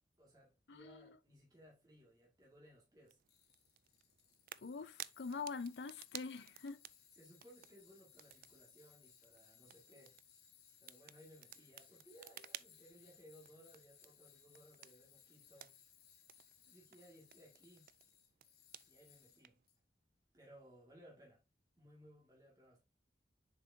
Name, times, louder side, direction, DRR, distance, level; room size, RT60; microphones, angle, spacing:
voice 1, 0.0-3.2 7.1-10.2 10.8-15.8 16.7-17.9 18.9-19.6 20.3-21.4 21.8-22.8, equal, 20° right, 2.1 m, -62 dB
voice 2, 0.7-1.2 4.6-6.8, left 4 dB, 80° left, 0.6 m, -45 dB
sound 1, 3.0-19.7, right 13 dB, 50° right, 0.3 m, -57 dB
Tools, 3.3-19.8, left 8 dB, 65° left, 1.6 m, -66 dB
7.2 x 5.1 x 2.7 m
head